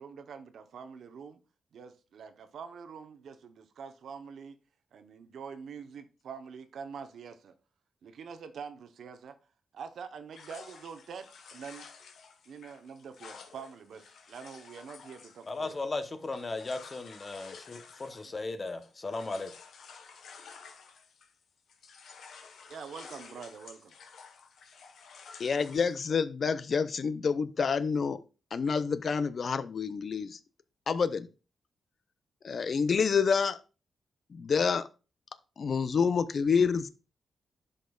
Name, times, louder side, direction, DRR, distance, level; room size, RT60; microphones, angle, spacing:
voice 1, 0.0-1.4 1.7-4.6 4.9-7.5 8.0-9.4 9.7-11.3 11.5-11.9 12.5-15.8 18.2-18.4 22.7-23.9, right 6 dB, 75° right, 0.8 m, -45 dB
sound 1, 10.3-21.4 21.7-26.0, left 5 dB, 80° left, 1.1 m, -52 dB
voice 2, 15.5-19.5, left 3 dB, 25° left, 0.8 m, -36 dB
voice 3, 25.4-28.2 28.5-30.4 30.9-31.3 32.4-33.6 34.3-34.9 35.6-36.9, left 5 dB, 45° left, 0.4 m, -28 dB
11.5 x 5.2 x 2.3 m
wide cardioid pair, 155°, 0 cm